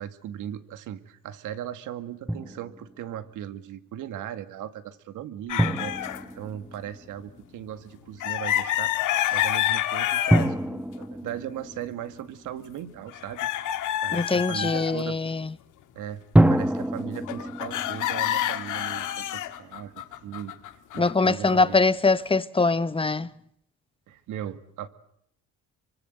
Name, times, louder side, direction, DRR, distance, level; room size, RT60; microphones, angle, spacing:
voice 1, 0.0-15.2 15.9-16.2 16.5-19.1 19.3-20.5 20.9-21.8 24.1-24.9, right 10 dB, 80° right, 2.1 m, -38 dB
Drum, 2.3-3.0 5.6-7.4 10.3-12.8 16.3-19.5, right 1 dB, 5° right, 1.3 m, -26 dB
sound 1, 5.5-6.2 8.2-10.5 11.0-11.1 13.1-15.0 17.2-21.7, left 12 dB, 75° left, 2.0 m, -28 dB
voice 2, 14.1-15.5 21.0-23.3, left 3 dB, 15° left, 1.2 m, -23 dB
26.0 x 24.5 x 7.9 m
cardioid pair, 90°, 31 cm